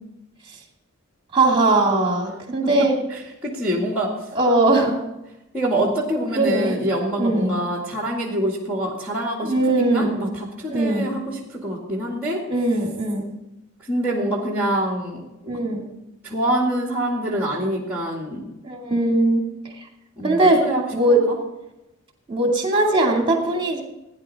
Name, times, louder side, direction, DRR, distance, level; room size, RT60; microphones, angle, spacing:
voice 1, 1.3-2.9 4.3-4.9 6.3-6.7 7.2-7.6 9.4-10.2 10.7-11.1 12.5-13.3 15.5-15.9 18.6-19.5 20.2-20.7 20.9-21.2 22.3-23.8, right 2 dB, 25° right, 1 dB, 2.5 m, -20 dB
voice 2, 2.6-4.1 4.7-5.0 5.5-12.4 13.8-15.6 16.2-18.5 20.2-21.2, right 1 dB, 10° right, -1 dB, 2.1 m, -26 dB
16.5 x 10.0 x 4.2 m, 0.93 s
head